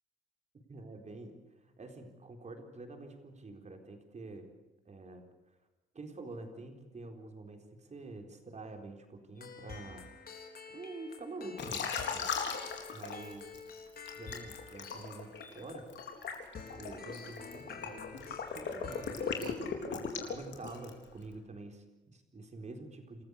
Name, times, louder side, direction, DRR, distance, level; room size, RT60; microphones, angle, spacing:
voice 1, 0.7-1.4 1.6-4.5 4.9-5.3 5.9-10.1 10.7-12.3 12.9-13.4 14.2-15.9 16.8-23.2, right 2 dB, 35° right, 5 dB, 4.2 m, -47 dB
sound 1, 9.4-19.5, left 4 dB, 50° left, 4.0 m, -49 dB
Liquid, 11.6-13.6 14.1-21.0, left 6 dB, 65° left, 4.0 m, -38 dB
27.5 x 14.0 x 8.4 m, 1.1 s
cardioid pair, 90°, 20 cm